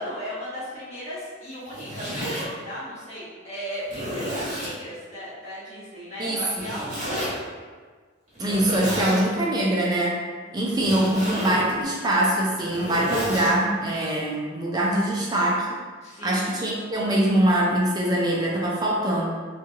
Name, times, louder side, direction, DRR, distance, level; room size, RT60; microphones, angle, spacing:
voice 1, 0.0-7.3 10.4-10.9 16.0-16.7, equal, 35° left, -10 dB, 1.1 m, -37 dB
Zipper (clothing), 1.5-2.5 3.2-3.3 3.9-4.7 6.6-7.3 8.3-9.2 10.7-11.6 12.4-13.5, equal, 35° right, 1.1 m, -31 dB
voice 2, 6.2-6.7 8.4-10.2 10.5-15.8 16.2-19.3, right 1 dB, 20° right, -3 dB, 0.4 m, -23 dB
3.0 x 2.3 x 2.7 m, 1.5 s
head